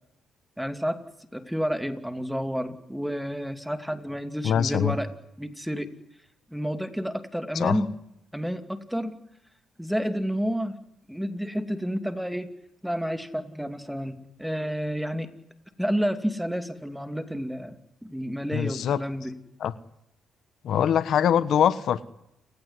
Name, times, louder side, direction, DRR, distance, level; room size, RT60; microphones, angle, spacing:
voice 1, 0.6-1.0 1.3-5.1 5.4-5.9 6.5-7.9 8.3-9.1 9.8-10.8 11.1-12.5 12.8-15.3 15.8-17.7 18.0-19.3, equal, ahead, 8 dB, 2.7 m, -30 dB
voice 2, 4.4-4.9 7.5-7.8 18.5-19.0 19.6-19.7 20.6-22.0, left 9 dB, 70° left, 14 dB, 1.2 m, -23 dB
29.5 x 17.5 x 9.9 m, 0.82 s
cardioid pair, 90°, 0 cm